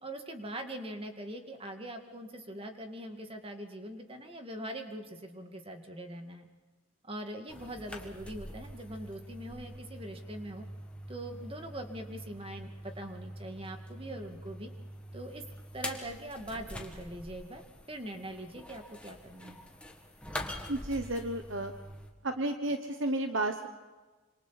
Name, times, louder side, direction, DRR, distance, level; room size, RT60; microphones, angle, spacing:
voice 1, 0.0-6.5 7.0-10.6 11.1-14.7 15.1-15.4 15.7-17.6 17.9-19.6, right 1 dB, 25° right, 5 dB, 2.1 m, -42 dB
sound 1, 7.5-22.1, equal, 5° left, 2.0 m, -45 dB
voice 2, 20.7-21.7 22.2-23.7, right 1 dB, 65° right, 6 dB, 1.2 m, -32 dB
26.5 x 26.5 x 4.3 m, 1.3 s
head